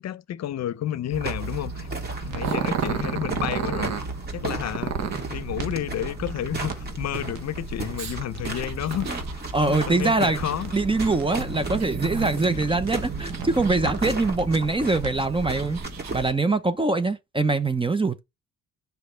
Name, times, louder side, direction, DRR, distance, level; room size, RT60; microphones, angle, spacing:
voice 1, 0.0-1.9 2.2-3.9 4.3-5.0 5.3-9.2 9.6-10.7, left 11 dB, 60° left, 0.7 m, -31 dB
sound 1, 1.1-16.3, right 3 dB, 35° right, 2.4 m, -34 dB
sound 2, 2.3-15.8, right 5 dB, 90° right, 1.7 m, -38 dB
Growling, 2.4-4.1 4.7-5.3 8.0-12.7 13.2-14.0 14.5-14.6 15.3-16.3, right 7 dB, 60° right, 1.3 m, -32 dB
voice 2, 9.5-10.4 10.7-15.8 16.1-18.2, right 3 dB, 15° right, 0.8 m, -23 dB
7.6 x 5.8 x 3.3 m
cardioid pair, 90°, 30 cm